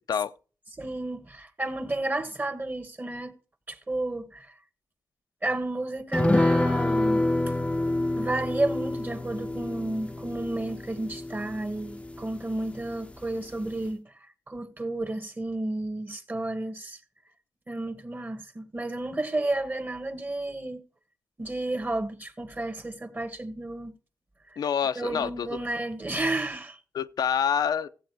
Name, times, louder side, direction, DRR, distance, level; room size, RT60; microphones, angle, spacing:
voice 1, 0.8-3.3 3.7-4.5 5.4-7.6 8.2-14.1 14.5-17.0 17.7-20.8 21.4-23.9 24.9-26.8, right 2 dB, 30° right, 1.6 m, -32 dB
sound 1, 6.1-12.9 13.2-13.3 13.7-13.8, left 2 dB, 15° left, 0.6 m, -27 dB
voice 2, 24.6-25.6 26.9-27.9, left 8 dB, 80° left, 0.6 m, -27 dB
15.0 x 7.8 x 4.8 m
cardioid pair, 70°, 7 cm